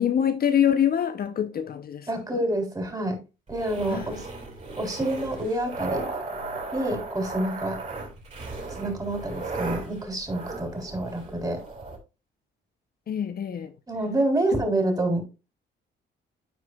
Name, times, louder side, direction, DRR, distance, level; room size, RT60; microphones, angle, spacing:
voice 1, 0.0-2.1 3.9-4.1 13.1-13.7, left 9 dB, 50° left, 0.7 m, -24 dB
voice 2, 2.1-3.2 3.5-4.3 4.8-6.1 6.7-7.8 8.7-11.6 13.9-15.2, right 1 dB, 20° right, 3.4 m, -27 dB
sound 1, 3.5-12.0, right 3 dB, 35° right, 4.6 m, -36 dB
14.0 x 4.8 x 2.3 m
cardioid pair, 90°, 20 cm